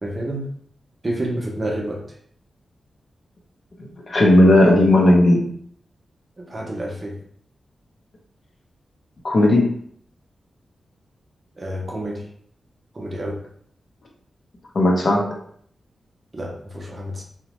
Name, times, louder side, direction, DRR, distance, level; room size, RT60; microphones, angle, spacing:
voice 1, 0.0-0.5 1.0-2.0 6.4-7.2 11.6-12.3 12.9-13.4 16.3-17.2, right 1 dB, 25° right, 0 dB, 0.6 m, -29 dB
voice 2, 3.8-5.4 9.2-9.7 14.7-15.3, left 1 dB, 45° left, 0 dB, 0.6 m, -15 dB
2.8 x 2.1 x 2.9 m, 0.64 s
wide cardioid pair, 160°, 0 cm